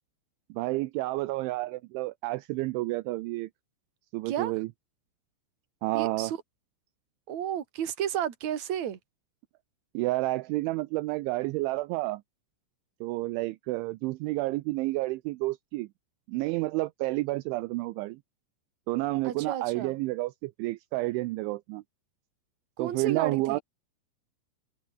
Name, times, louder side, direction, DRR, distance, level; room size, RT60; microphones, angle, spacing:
voice 1, 0.5-3.5 4.1-4.7 5.8-6.3 9.9-12.2 13.0-15.9 16.3-18.2 18.9-21.8 22.8-23.6, right 20 dB, 80° right, 2.9 m, -30 dB
voice 2, 5.9-6.4 7.3-9.0 19.2-20.0 22.8-23.6, right 10 dB, 45° right, 3.0 m, -32 dB
omnidirectional pair, 5.9 m